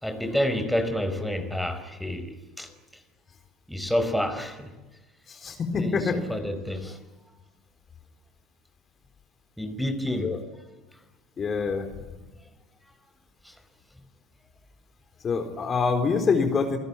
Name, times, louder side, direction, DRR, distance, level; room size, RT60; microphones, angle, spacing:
voice 1, 0.0-2.7 3.7-4.7 5.7-7.0 9.6-10.3 13.4-13.5, left 1 dB, ahead, 4.8 m, -29 dB
voice 2, 5.3-6.2 10.2-10.4 11.4-11.9 15.2-16.8, left 5 dB, 35° left, 3.9 m, -25 dB
28.5 x 18.5 x 10.0 m
hypercardioid pair, 90°, 0 cm